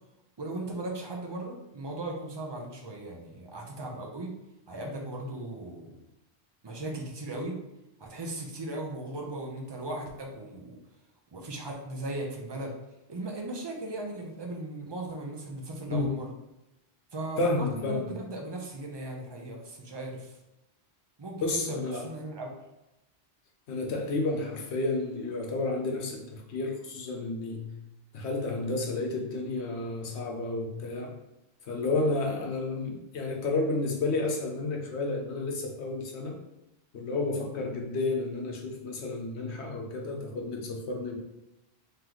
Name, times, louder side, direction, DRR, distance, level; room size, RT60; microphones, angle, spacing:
voice 1, 0.4-4.3 4.7-6.0 6.6-7.5 8.0-10.8 11.3-12.7 13.1-16.3 17.1-20.4 21.2-22.6, right 1 dB, 30° right, 1 dB, 0.6 m, -37 dB
voice 2, 17.4-18.1 21.4-22.1 23.7-27.7 28.1-31.1 31.6-36.4 36.9-41.2, left 2 dB, 85° left, 1 dB, 1.0 m, -31 dB
3.1 x 3.0 x 3.9 m, 0.93 s
omnidirectional pair, 1.1 m